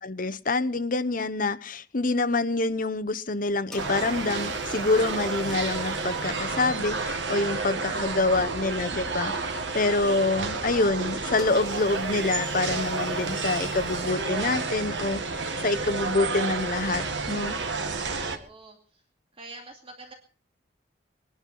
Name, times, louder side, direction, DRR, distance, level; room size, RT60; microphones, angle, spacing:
voice 1, 0.0-17.6, left 3 dB, 50° left, 12 dB, 1.0 m, -26 dB
sound 1, 3.7-7.6 11.4-14.1, left 2 dB, ahead, 4.0 m, -48 dB
sound 2, 3.8-18.4, right 3 dB, 85° right, 1.9 m, -30 dB
voice 2, 7.5-8.1 18.2-19.1 19.3-20.1, right 2 dB, 30° right, 3 dB, 2.4 m, -46 dB
20.5 x 11.5 x 5.5 m, 0.43 s
head